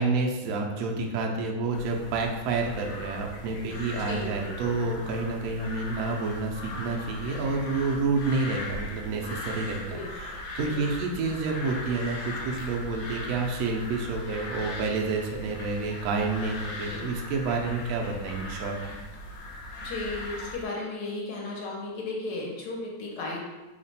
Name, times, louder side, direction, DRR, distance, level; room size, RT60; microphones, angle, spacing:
voice 1, 0.0-9.8 10.1-19.0, right 3 dB, 85° right, 1 dB, 0.7 m, -29 dB
sound 1, 1.7-20.7, left 1 dB, 90° left, 1.4 m, -39 dB
voice 2, 4.1-4.8 9.9-10.1 10.6-10.9 16.9-17.1 19.8-23.4, left 2 dB, 75° left, -2 dB, 1.3 m, -35 dB
3.2 x 2.1 x 4.0 m, 1.2 s
omnidirectional pair, 2.0 m